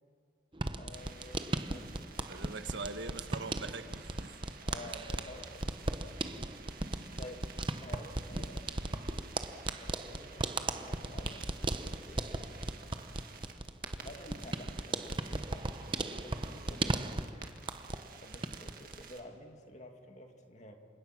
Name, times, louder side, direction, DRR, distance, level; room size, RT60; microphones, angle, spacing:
sound 1, 0.5-18.1 18.3-19.0, right 2 dB, 25° right, 0.8 m, -37 dB
voice 1, 0.8-2.6 4.7-5.6 7.2-7.5 7.8-8.7 9.7-11.5 12.0-12.4 12.9-13.0 14.0-17.7 18.2-20.8, left 1 dB, 40° left, 2.4 m, -51 dB
sound 2, 0.9-19.2, right 5 dB, 50° right, 2.0 m, -53 dB
voice 2, 2.3-4.4, right 3 dB, 70° right, 1.3 m, -42 dB
28.0 x 26.5 x 6.1 m
head